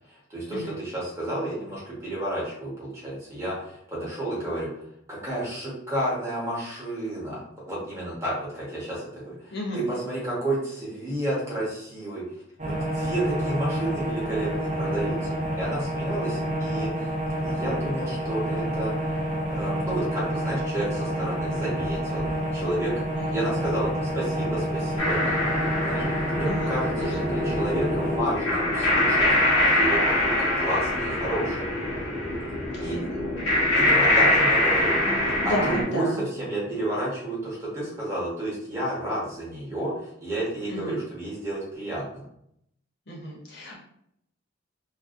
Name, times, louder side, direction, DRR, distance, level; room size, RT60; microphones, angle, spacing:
voice 1, 0.1-4.8 5.1-12.4 12.6-16.9 17.4-22.9 23.3-25.4 25.8-31.7 32.8-33.0 33.8-35.0 35.4-42.2, right 1 dB, 15° right, -6 dB, 0.9 m, -31 dB
voice 2, 9.5-9.8 23.1-23.4 26.5-26.7 27.0-27.1 32.7-33.0 35.0-36.2 40.7-41.0 43.1-43.8, equal, 55° left, -3 dB, 0.7 m, -33 dB
sound 1, 12.6-28.2, right 1 dB, 35° right, 0.5 m, -29 dB
sound 2, 25.0-35.8, left 1 dB, 80° left, 0.9 m, -24 dB
2.6 x 2.1 x 2.4 m, 0.74 s
head